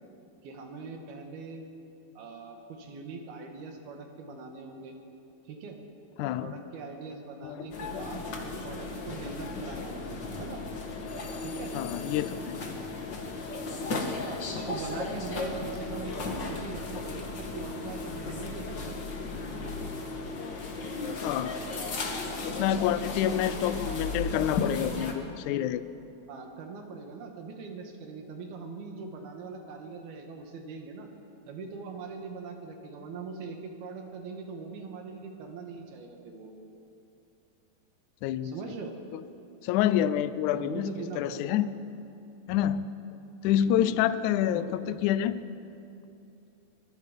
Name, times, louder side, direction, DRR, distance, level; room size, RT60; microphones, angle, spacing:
voice 1, 0.4-1.7 2.2-5.0 5.5-5.8 6.4-10.6 11.4-11.7 14.2-19.0 22.5-22.9 23.2-24.0 26.3-31.1 31.5-36.5 38.4-39.0 40.5-41.6 43.7-44.0 44.5-45.0, right 4 dB, 80° right, 3 dB, 3.8 m, -41 dB
voice 2, 6.2-6.6 7.4-8.1 11.7-12.6 21.2-21.6 22.4-25.8 38.2-38.5 39.1-39.2 39.6-41.7 42.5-42.9 43.4-45.4, left 11 dB, 85° left, 13 dB, 1.7 m, -28 dB
sound 1, 7.7-25.1, left 3 dB, 45° left, 1.6 m, -35 dB
23.0 x 21.5 x 5.3 m, 2.7 s
omnidirectional pair, 4.3 m